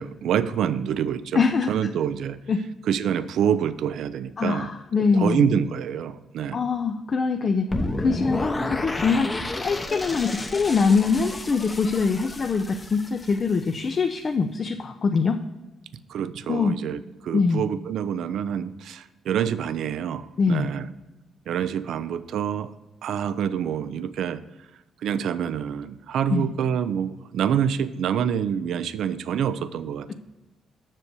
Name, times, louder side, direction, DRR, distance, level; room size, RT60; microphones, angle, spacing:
voice 1, 0.0-1.4 1.7-2.4 2.9-4.7 5.0-6.6 16.1-20.9 21.5-22.7 23.0-24.4 25.0-30.1, right 8 dB, 75° right, 13 dB, 0.5 m, -26 dB
voice 2, 1.3-1.7 2.5-2.6 4.4-5.5 6.5-7.7 8.0-15.4 16.5-16.8 17.3-17.6 20.4-20.7 26.3-26.5, left 4 dB, 40° left, 6 dB, 0.5 m, -23 dB
sound 1, 7.7-13.7, left 2 dB, 20° left, 0.9 m, -31 dB
7.5 x 6.6 x 4.7 m, 1.1 s
cardioid pair, 90°, 0 cm